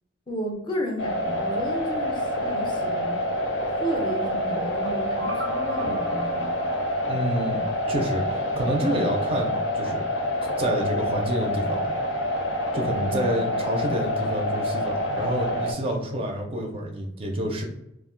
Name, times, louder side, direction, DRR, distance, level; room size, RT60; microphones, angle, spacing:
voice 1, 0.3-3.1 3.7-6.5 13.0-13.6, equal, 25° left, 1 dB, 0.5 m, -32 dB
sound 1, 1.0-15.7, equal, 70° left, 0.5 m, -27 dB
sound 2, 4.6-7.7, right 1 dB, 85° right, 0.5 m, -39 dB
voice 2, 7.1-7.6 7.9-10.0 10.6-11.9 12.7-17.6, equal, 30° right, 1 dB, 0.4 m, -28 dB
2.3 x 2.1 x 3.7 m, 0.84 s
head